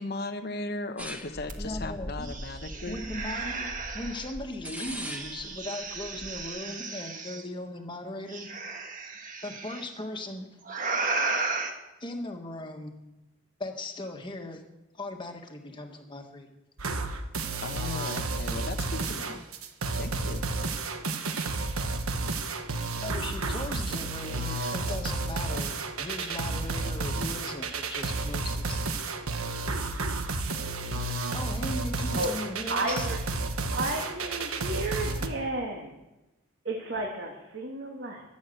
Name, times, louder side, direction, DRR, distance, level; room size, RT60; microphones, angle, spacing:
voice 1, 0.0-3.0 17.6-19.4 20.0-20.4, left 2 dB, 45° left, 7 dB, 1.0 m, -37 dB
sound 1, 1.0-6.5, equal, 5° right, 1.2 m, -40 dB
sound 2, 1.5-1.6 1.9-4.3 5.1-7.4 8.3-9.8 10.6-11.7, right 3 dB, 40° right, 1.5 m, -34 dB
voice 2, 1.6-2.3 2.9-8.5 9.4-10.6 12.0-13.0 13.6-14.6 14.9-16.5 23.0-28.8 31.3-33.1, left 2 dB, 20° left, 3 dB, 1.6 m, -38 dB
sound 3, 16.8-35.3, right 3 dB, 90° right, 1.3 m, -31 dB
voice 3, 32.7-33.2 33.7-35.9 36.6-38.2, right 2 dB, 55° right, 0 dB, 2.1 m, -32 dB
13.0 x 11.5 x 7.9 m, 1.0 s
head